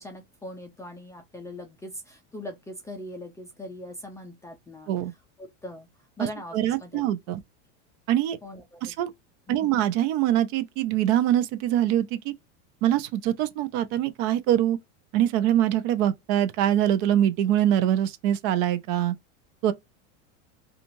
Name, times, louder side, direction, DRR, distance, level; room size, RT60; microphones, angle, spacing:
voice 1, 0.0-4.9 5.4-5.9 6.2-7.0 7.3-7.4 8.4-8.9 9.5-9.8, left 1 dB, 10° left, 0.3 m, -41 dB
voice 2, 6.5-7.4 8.1-8.4 8.8-9.1 9.5-12.3 12.8-14.8 15.1-19.2 19.6-19.7, right 11 dB, 55° right, 0.6 m, -24 dB
2.9 x 2.5 x 2.6 m
supercardioid pair, 130°, 37 cm